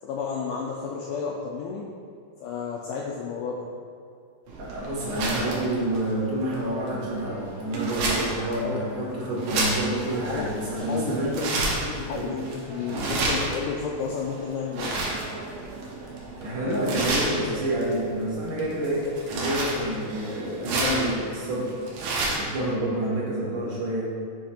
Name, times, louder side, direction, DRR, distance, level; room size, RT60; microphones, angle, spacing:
voice 1, 0.0-1.9 2.4-3.7 8.6-8.8 10.2-10.5 10.9-11.5 11.8-15.0, left 5 dB, 90° left, -2 dB, 1.8 m, -31 dB
sound 1, 4.5-22.6, right 2 dB, 75° right, 2.6 m, -31 dB
voice 2, 4.6-11.4 12.1-12.5 16.4-21.7 22.4-24.1, right 1 dB, 50° right, -7 dB, 1.6 m, -28 dB
7.4 x 3.4 x 4.3 m, 2.4 s
omnidirectional pair, 4.2 m